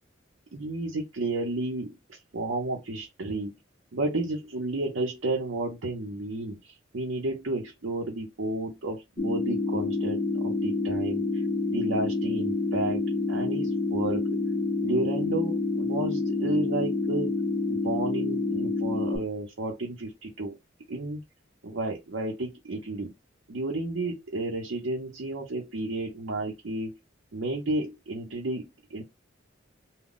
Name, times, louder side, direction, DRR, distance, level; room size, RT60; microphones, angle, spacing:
voice 1, 0.5-3.5 3.9-11.4 11.7-13.0 13.3-14.4 14.8-17.3 17.7-20.5 20.9-21.2 21.6-23.1 23.5-27.0 27.3-28.6 28.9-29.0, right 2 dB, 85° right, 0.7 m, -32 dB
sound 1, 9.2-19.2, left 3 dB, 25° left, 0.6 m, -28 dB
2.2 x 2.0 x 3.6 m
head